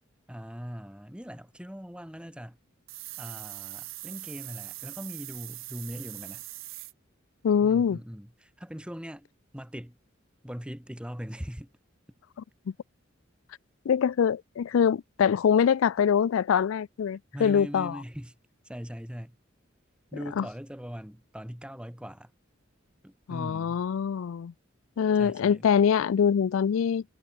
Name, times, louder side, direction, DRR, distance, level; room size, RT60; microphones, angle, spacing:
voice 1, 0.3-2.6 3.2-6.4 7.6-9.3 9.5-10.0 10.4-11.7 17.3-18.3 18.6-19.3 20.1-22.3 23.0-23.8 25.2-25.6, equal, 5° right, 2.2 m, -40 dB
sound 1, 2.9-6.9, right 18 dB, 90° right, 1.3 m, -41 dB
voice 2, 7.4-8.0 13.9-18.0 20.4-20.5 23.3-24.5 25.0-27.0, left 7 dB, 85° left, 0.4 m, -24 dB
head